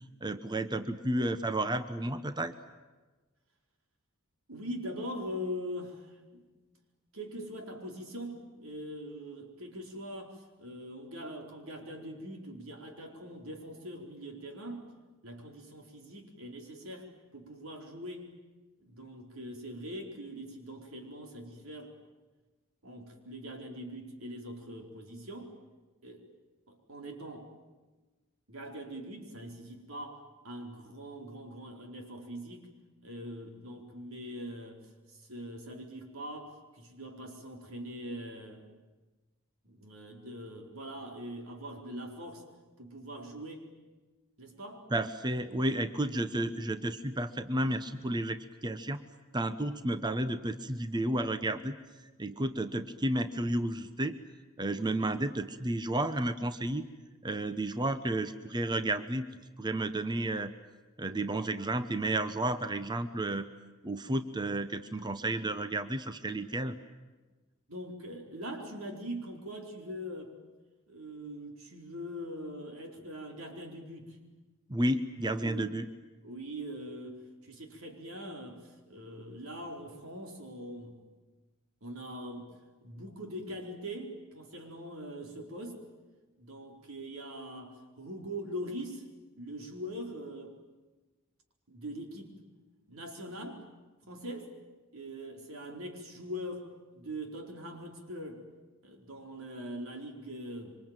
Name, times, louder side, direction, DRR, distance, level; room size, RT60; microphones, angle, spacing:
voice 1, 0.2-2.5 44.9-49.0 49.3-51.7 52.2-54.2 54.6-56.9 57.2-59.3 59.6-60.5 61.0-63.5 63.8-66.8 74.7-75.9, right 1 dB, 20° right, 10 dB, 1.0 m, -32 dB
voice 2, 4.5-6.7 7.1-14.9 15.2-18.3 18.8-21.9 22.8-25.5 26.0-26.3 26.7-27.5 28.5-32.7 33.0-34.8 35.1-38.6 39.6-42.4 42.8-43.7 44.4-44.8 67.7-70.3 70.9-74.2 75.4-75.7 76.2-81.0 81.8-82.5 82.8-85.8 86.4-89.0 89.3-90.5 91.7-92.4 92.9-93.6 94.1-94.5 94.9-98.4 98.8-100.8, equal, 85° right, 2 dB, 4.5 m, -42 dB
26.5 x 25.0 x 9.1 m, 1.2 s
head